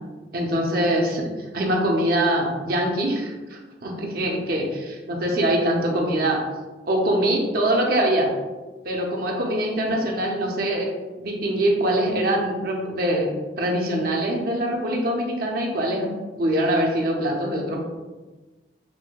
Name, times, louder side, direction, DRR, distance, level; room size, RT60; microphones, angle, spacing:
voice 1, 0.3-4.8 5.1-6.4 6.9-8.3 8.8-10.9 11.2-13.3 13.6-16.1 16.4-17.8, right 1 dB, 55° right, -1 dB, 0.6 m, -23 dB
6.0 x 2.1 x 2.2 m, 1.2 s
head